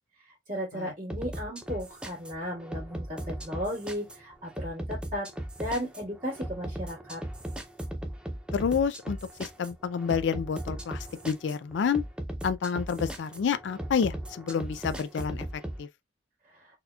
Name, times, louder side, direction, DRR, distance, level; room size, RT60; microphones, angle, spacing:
voice 1, 0.5-5.3 5.6-7.2, equal, 45° right, 1.9 m, -35 dB
sound 1, 1.1-15.8, right 1 dB, 5° right, 0.4 m, -38 dB
voice 2, 8.5-12.0 12.4-15.5 15.8-15.9, left 6 dB, 70° left, 0.3 m, -29 dB
4.1 x 2.8 x 2.3 m
head